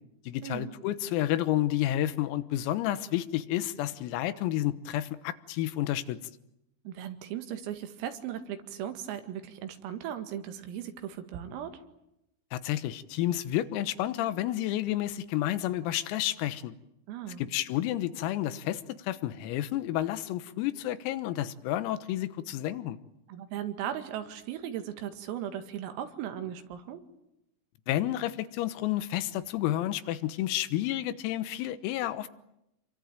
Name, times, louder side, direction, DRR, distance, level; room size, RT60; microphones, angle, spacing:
voice 1, 0.3-6.2 12.5-16.8 17.4-23.0 27.9-32.3, left 13 dB, 85° left, 13 dB, 3.9 m, -30 dB
voice 2, 6.9-11.8 17.1-17.4 23.3-27.0, right 10 dB, 80° right, 8 dB, 4.7 m, -37 dB
28.0 x 23.0 x 9.2 m, 0.85 s
omnidirectional pair, 6.0 m